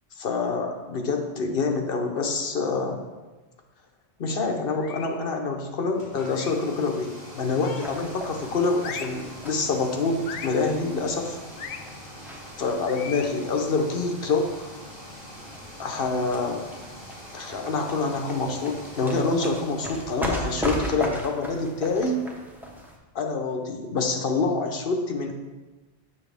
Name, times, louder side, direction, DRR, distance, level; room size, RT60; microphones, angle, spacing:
voice 1, 0.2-3.0 4.2-11.4 12.6-14.5 15.8-16.6 17.3-22.3 23.1-25.3, left 3 dB, 60° left, 3 dB, 1.0 m, -26 dB
sound 1, 4.8-5.2 6.3-6.7 7.6-8.1 8.8-9.3 10.2-10.6 11.6-11.8 12.9-13.4, left 6 dB, 85° left, 0.9 m, -38 dB
sound 2, 5.9-20.6, equal, 45° left, 2.6 m, -44 dB
sound 3, 7.8-23.0, equal, ahead, 0.7 m, -38 dB
7.3 x 5.9 x 3.4 m, 1.2 s
omnidirectional pair, 1.1 m